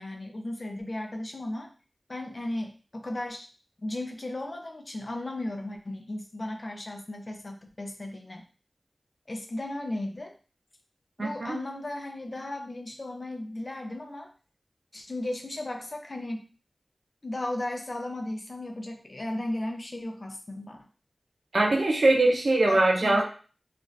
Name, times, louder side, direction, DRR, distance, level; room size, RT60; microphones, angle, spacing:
voice 1, 0.0-1.7 2.1-3.5 3.8-8.4 9.3-10.3 11.2-14.3 14.9-16.5 17.2-20.9 22.7-23.2, left 1 dB, 50° left, 3 dB, 0.6 m, -35 dB
voice 2, 11.2-11.6 21.5-23.2, right 2 dB, 85° right, 0 dB, 0.6 m, -22 dB
2.5 x 2.4 x 3.1 m, 0.37 s
wide cardioid pair, 70°, 0 cm